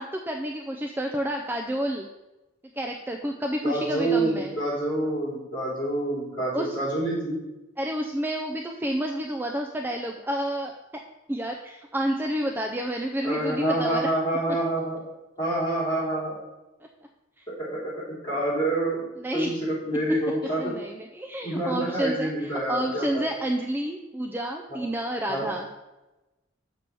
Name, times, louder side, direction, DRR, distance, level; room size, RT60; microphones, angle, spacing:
voice 1, 0.0-2.1 2.8-4.6 6.5-6.8 7.8-10.7 11.3-14.1 19.2-19.5 20.6-25.7, right 1 dB, 10° right, 2 dB, 0.4 m, -29 dB
voice 2, 3.6-7.4 13.2-15.0 15.4-16.4 17.5-19.0 19.3-20.7 21.4-23.2 25.3-25.5, right 1 dB, 25° left, -6 dB, 3.2 m, -27 dB
6.9 x 4.5 x 6.8 m, 1.0 s
head